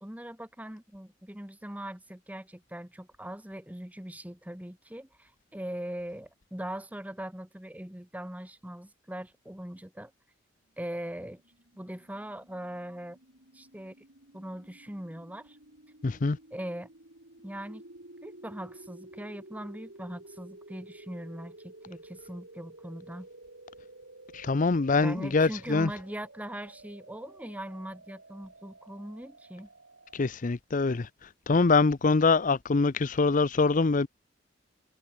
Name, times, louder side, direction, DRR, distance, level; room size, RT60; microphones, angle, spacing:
voice 1, 0.0-10.1 10.8-11.4 11.8-13.2 13.5-13.9 14.3-15.6 16.5-16.9 17.4-17.8 18.2-23.3 25.0-29.7, right 1 dB, 10° right, 1.4 m, -40 dB
sound 1, 11.4-30.3, right 2 dB, 75° right, 4.7 m, -52 dB
voice 2, 16.0-16.4 24.3-25.9 30.1-34.1, left 4 dB, 45° left, 0.6 m, -24 dB
head